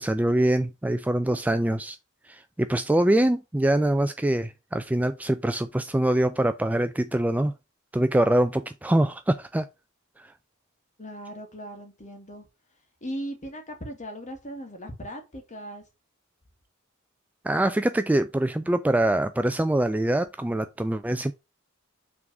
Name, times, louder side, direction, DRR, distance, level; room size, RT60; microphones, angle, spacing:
voice 1, 0.0-2.0 2.3-7.5 7.9-9.7 10.2-10.3 17.4-21.3, right 1 dB, 5° right, 0.3 m, -24 dB
voice 2, 11.0-12.5 13.0-15.8, equal, 35° left, 1.9 m, -38 dB
5.9 x 3.8 x 6.0 m
head